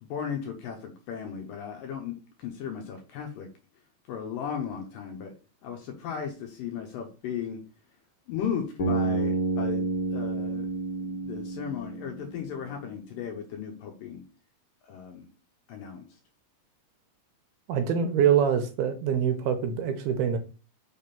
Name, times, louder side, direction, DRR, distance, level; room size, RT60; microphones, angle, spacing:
voice 1, 0.0-3.5 4.1-5.3 5.6-7.6 8.3-10.7 11.0-14.2 14.8-15.3 15.7-16.2, left 7 dB, 75° left, 3 dB, 2.2 m, -36 dB
Bass guitar, 8.8-12.8, right 3 dB, 45° left, 1.8 m, -30 dB
voice 2, 17.7-20.4, right 8 dB, 75° right, 8 dB, 2.5 m, -24 dB
5.9 x 3.6 x 5.7 m, 0.35 s
omnidirectional pair, 4.8 m